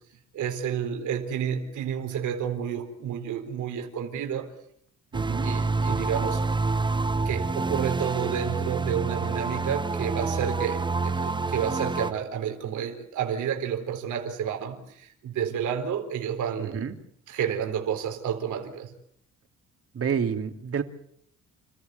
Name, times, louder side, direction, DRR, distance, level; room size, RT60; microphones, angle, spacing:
voice 1, 0.3-4.5 5.4-6.4 7.3-16.9 17.3-18.9, right 8 dB, 75° right, 4 dB, 4.1 m, -30 dB
sound 1, 5.1-12.1, right 3 dB, 15° right, 0.9 m, -28 dB
voice 2, 5.1-5.5 16.6-17.0 19.9-20.8, right 7 dB, 50° right, 7 dB, 2.9 m, -29 dB
29.5 x 14.5 x 9.5 m, 0.69 s
cardioid pair, 90°, 30 cm